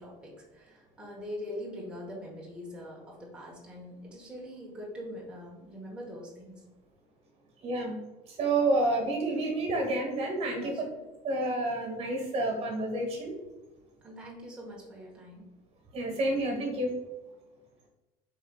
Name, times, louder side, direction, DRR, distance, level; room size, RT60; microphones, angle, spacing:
voice 1, 0.0-6.7 8.7-8.9 10.6-11.0 14.0-15.5, equal, 5° right, -4 dB, 1.2 m, -43 dB
voice 2, 7.6-8.0 8.3-10.7 11.2-13.3 15.9-16.9, right 2 dB, 45° right, 2 dB, 1.4 m, -29 dB
5.2 x 3.9 x 2.4 m, 1.1 s
supercardioid pair, 115°, 15 cm